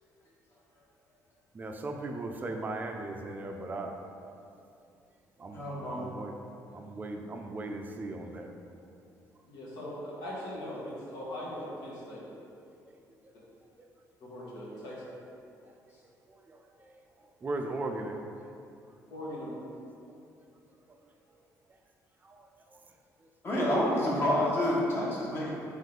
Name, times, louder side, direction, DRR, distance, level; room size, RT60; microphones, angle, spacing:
voice 1, 1.5-3.9 4.2-4.3 5.4-6.4 6.7-8.5 12.5-12.7 16.5-16.6 17.4-18.2 22.2-22.4, right 2 dB, 25° right, 3 dB, 0.4 m, -37 dB
voice 2, 5.5-6.1 23.4-25.5, left 1 dB, 35° left, -6 dB, 1.1 m, -28 dB
voice 3, 9.5-12.2 14.3-15.0 19.1-19.5, left 1 dB, 80° left, -7 dB, 1.3 m, -40 dB
3.6 x 3.1 x 3.7 m, 2.5 s
cardioid pair, 115°, 7 cm